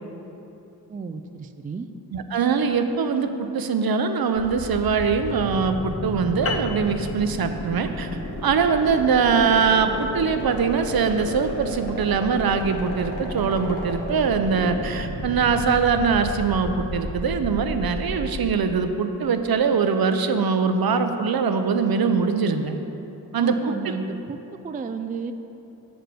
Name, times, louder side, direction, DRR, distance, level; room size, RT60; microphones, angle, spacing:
voice 1, 0.9-1.9 23.4-25.3, right 5 dB, 20° right, 8 dB, 0.3 m, -33 dB
voice 2, 2.1-8.1 8.4-22.8 23.3-23.7, right 5 dB, 60° right, 8 dB, 0.6 m, -22 dB
sound 1, 4.3-18.3, left 1 dB, 70° left, 1.5 m, -32 dB
sound 2, 6.5-11.2, left 4 dB, 35° left, 0.6 m, -36 dB
6.6 x 5.1 x 6.0 m, 3.0 s
cardioid pair, 45°, 40 cm